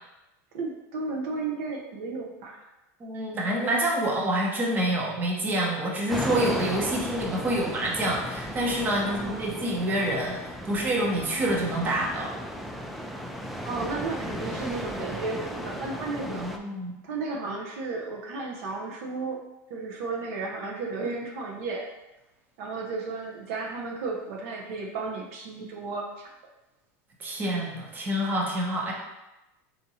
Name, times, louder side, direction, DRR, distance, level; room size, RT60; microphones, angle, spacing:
voice 1, 0.5-2.7 9.0-9.6 13.6-16.5 17.0-19.4 19.7-21.9 22.6-26.3, right 3 dB, 65° right, 0 dB, 0.8 m, -33 dB
voice 2, 3.0-12.3 16.3-16.9 27.2-28.9, right 1 dB, 20° right, -2 dB, 0.9 m, -27 dB
sound 1, 6.1-16.6, equal, ahead, 0.3 m, -35 dB
4.2 x 2.7 x 4.1 m, 0.99 s
supercardioid pair, 135°, 8 cm